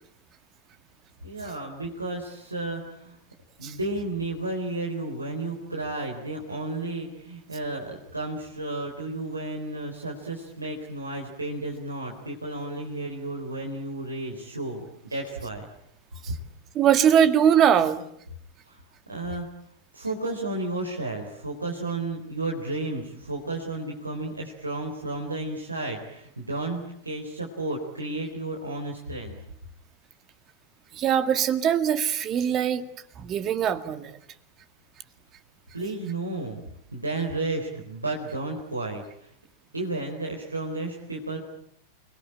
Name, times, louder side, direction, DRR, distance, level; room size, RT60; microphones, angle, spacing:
voice 1, 1.2-3.2 3.6-14.8 15.1-15.7 18.7-18.8 19.1-19.5 19.9-29.4 35.7-36.6 36.9-39.0 39.7-41.4, right 2 dB, 80° right, 0 dB, 4.0 m, -32 dB
voice 2, 16.7-18.0 30.9-32.8 33.2-34.2, right 9 dB, 30° right, 12 dB, 2.0 m, -22 dB
29.5 x 21.5 x 8.9 m, 0.72 s
figure-of-eight pair, 90°, 0 cm